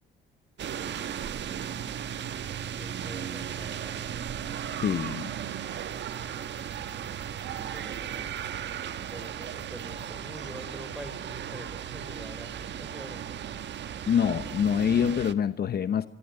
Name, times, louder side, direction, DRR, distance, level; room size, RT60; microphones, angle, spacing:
sound 1, 0.6-15.3, right 9 dB, 65° right, 1.4 m, -36 dB
voice 1, 2.6-4.1 7.4-8.4 9.1-13.5, equal, 5° right, 11 dB, 5.2 m, -46 dB
voice 2, 4.8-5.3 14.1-16.1, left 8 dB, 50° left, 13 dB, 0.9 m, -25 dB
24.5 x 22.5 x 9.9 m, 0.93 s
cardioid pair, 90°, 20 cm